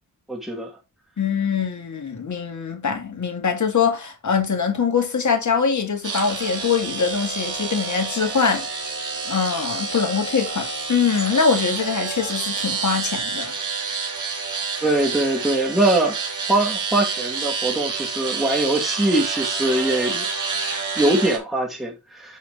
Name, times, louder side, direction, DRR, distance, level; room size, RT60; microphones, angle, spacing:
voice 1, 0.3-0.7 14.8-16.2 16.5-20.3 20.6-22.4, right 1 dB, ahead, 2.0 m, -22 dB
voice 2, 1.2-8.7 9.3-13.5, left 6 dB, 50° left, 2.2 m, -23 dB
sound 1, 6.0-21.4, right 5 dB, 50° right, 2.6 m, -28 dB
6.3 x 5.7 x 3.6 m
cardioid pair, 65°, 38 cm